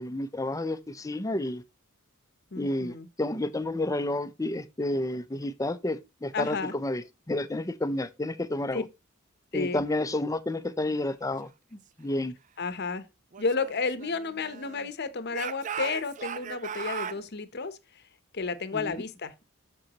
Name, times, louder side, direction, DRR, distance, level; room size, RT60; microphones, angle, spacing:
voice 1, 0.0-1.6 2.6-8.8 9.5-11.5 12.0-12.3 18.7-18.9, left 1 dB, 15° left, 0.6 m, -30 dB
voice 2, 2.5-3.1 6.3-6.7 8.7-8.8 9.5-9.8 12.6-13.1 13.4-18.0 18.3-19.4, left 4 dB, 50° left, 0.9 m, -32 dB
Speech / Shout, 13.3-14.9 15.3-17.2, right 7 dB, 35° right, 0.4 m, -38 dB
7.8 x 6.9 x 2.9 m
head